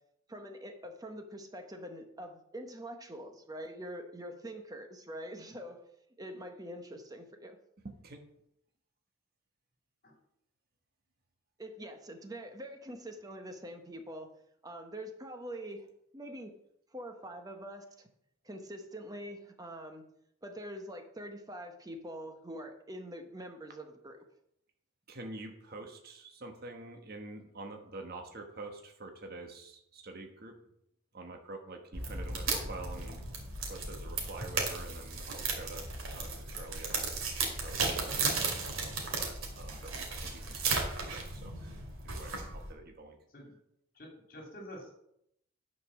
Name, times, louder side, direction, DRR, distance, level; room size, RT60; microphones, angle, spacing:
voice 1, 0.3-5.9 6.2-7.6 11.6-14.3 14.6-15.9 16.1-16.5 16.9-18.1 18.4-20.0 20.4-24.2 32.5-32.7, equal, 15° right, 5 dB, 0.9 m, -44 dB
voice 2, 7.8-8.2 25.1-30.6 31.1-33.2 33.6-37.1 37.4-43.2, right 2 dB, 45° right, 4 dB, 1.2 m, -47 dB
sound 1, 31.9-42.7, right 4 dB, 75° right, 2.5 m, -35 dB
voice 3, 43.9-44.9, equal, 45° left, 0 dB, 2.9 m, -47 dB
9.9 x 5.3 x 6.2 m, 0.75 s
head